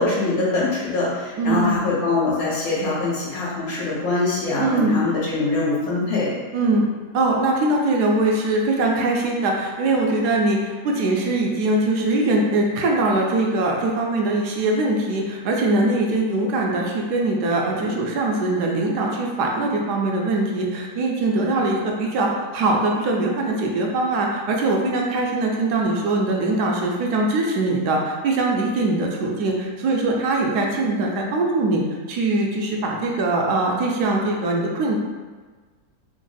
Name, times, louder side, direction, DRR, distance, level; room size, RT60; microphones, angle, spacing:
voice 1, 0.0-6.3, left 3 dB, 65° left, -6 dB, 1.3 m, -23 dB
voice 2, 1.4-1.7 4.6-5.0 6.5-6.9 7.1-35.0, right 2 dB, 75° right, -1 dB, 1.1 m, -22 dB
3.4 x 2.0 x 3.8 m, 1.4 s
omnidirectional pair, 1.8 m